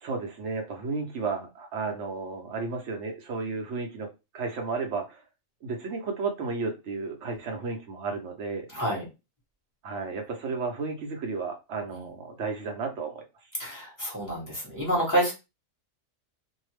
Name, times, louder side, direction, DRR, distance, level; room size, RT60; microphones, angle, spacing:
voice 1, 0.0-4.1 4.3-5.2 5.6-8.7 9.8-13.2, right 4 dB, 65° right, 4 dB, 1.0 m, -33 dB
voice 2, 8.7-9.0 11.9-12.0 13.6-15.3, right 1 dB, 15° left, -5 dB, 1.3 m, -28 dB
2.7 x 2.3 x 3.2 m, 0.27 s
omnidirectional pair, 1.3 m